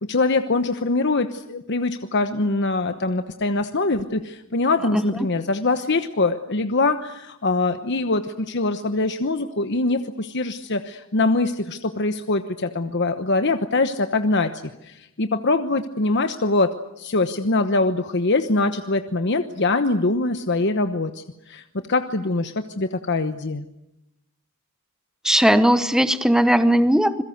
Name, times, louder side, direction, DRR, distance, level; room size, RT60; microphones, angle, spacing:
voice 1, 0.0-14.5 14.8-23.6, left 3 dB, 55° left, 8 dB, 1.1 m, -23 dB
voice 2, 25.2-27.2, equal, 5° right, 11 dB, 0.9 m, -18 dB
27.0 x 22.0 x 8.0 m, 0.85 s
head